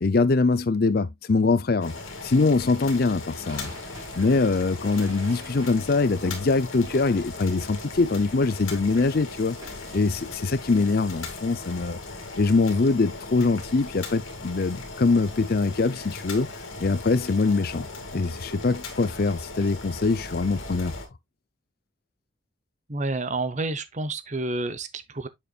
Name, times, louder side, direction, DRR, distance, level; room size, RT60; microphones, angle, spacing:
voice 1, 0.0-1.9 2.2-3.7 4.2-9.6 9.9-12.0 12.4-16.5 16.8-17.9 18.1-21.0, left 3 dB, 50° left, 0.5 m, -23 dB
Boiling, 1.8-21.1, left 3 dB, 90° left, 2.3 m, -38 dB
sound 1, 3.3-10.3, right 1 dB, 15° right, 2.9 m, -47 dB
voice 2, 22.9-25.3, right 2 dB, 35° right, 0.9 m, -29 dB
8.3 x 6.7 x 2.4 m
head